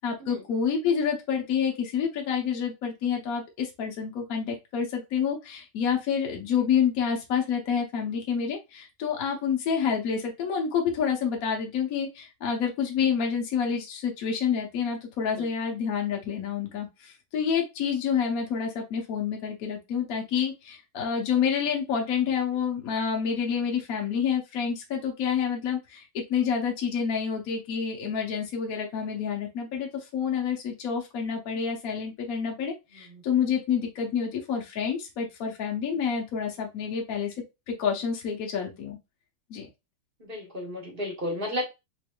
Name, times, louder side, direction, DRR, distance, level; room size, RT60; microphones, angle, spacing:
voice 1, 0.0-37.3 37.7-39.0 39.5-39.7, left 7 dB, 55° left, 1 dB, 1.1 m, -28 dB
voice 2, 32.9-33.2 40.2-41.6, left 1 dB, 30° right, 0 dB, 1.1 m, -33 dB
4.2 x 3.3 x 2.3 m, 0.24 s
omnidirectional pair, 2.4 m